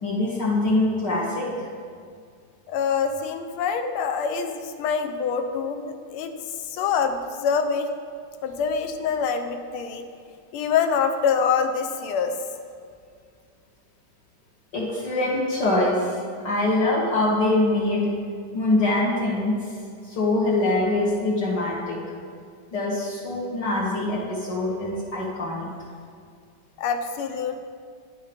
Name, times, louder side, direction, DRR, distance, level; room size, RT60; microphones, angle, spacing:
voice 1, 0.0-1.5 14.7-16.2 16.4-18.1 18.5-19.7 20.0-22.0 22.7-25.7, left 2 dB, 60° left, -6 dB, 1.8 m, -23 dB
voice 2, 2.7-6.3 6.7-7.9 8.4-10.1 10.5-12.4 26.8-27.6, left 6 dB, 85° left, 7 dB, 1.6 m, -25 dB
9.9 x 5.5 x 5.1 m, 2.2 s
omnidirectional pair, 2.3 m